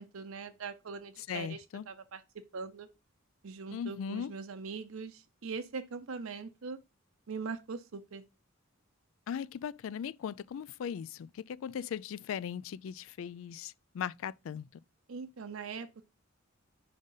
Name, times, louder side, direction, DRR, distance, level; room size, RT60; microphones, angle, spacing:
voice 1, 0.0-2.2 2.5-2.9 3.4-6.8 7.3-8.2 15.1-16.1, right 5 dB, 90° right, 0.6 m, -41 dB
voice 2, 1.3-1.9 3.7-4.3 9.3-14.7, left 8 dB, 75° left, 0.3 m, -38 dB
5.0 x 3.9 x 5.4 m
head